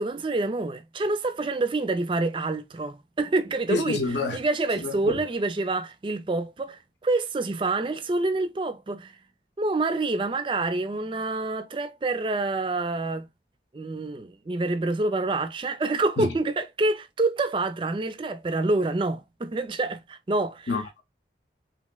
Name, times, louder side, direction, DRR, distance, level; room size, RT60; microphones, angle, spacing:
voice 1, 0.0-4.0 4.3-9.2 9.6-13.3 13.7-20.7, right 2 dB, 30° right, 0.4 m, -27 dB
voice 2, 3.7-4.4 4.8-5.2 16.2-16.3 20.7-21.0, left 3 dB, 80° left, 0.7 m, -28 dB
3.0 x 2.8 x 2.2 m
head